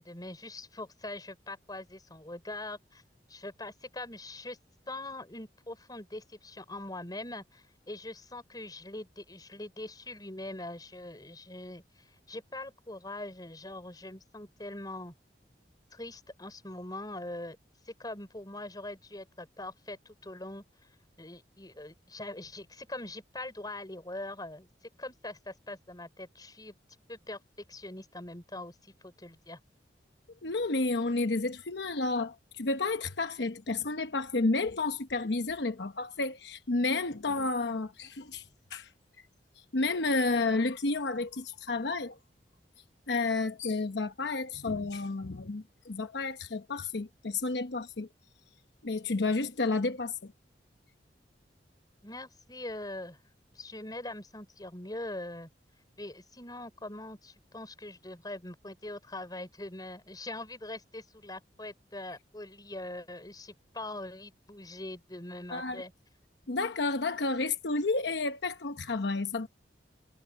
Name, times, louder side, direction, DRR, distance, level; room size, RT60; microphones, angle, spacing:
voice 1, 0.0-3.0 3.3-4.6 4.9-15.1 15.9-17.6 17.8-20.6 21.2-24.7 25.0-26.7 27.1-27.4 27.7-29.6 52.0-53.2 53.5-55.5 56.0-65.9, left 2 dB, 25° left, 5.2 m, -42 dB
voice 2, 30.4-38.4 38.7-38.9 39.7-42.2 43.1-48.1 48.8-50.3 65.5-65.8 66.5-69.5, left 3 dB, 75° left, 1.0 m, -31 dB
head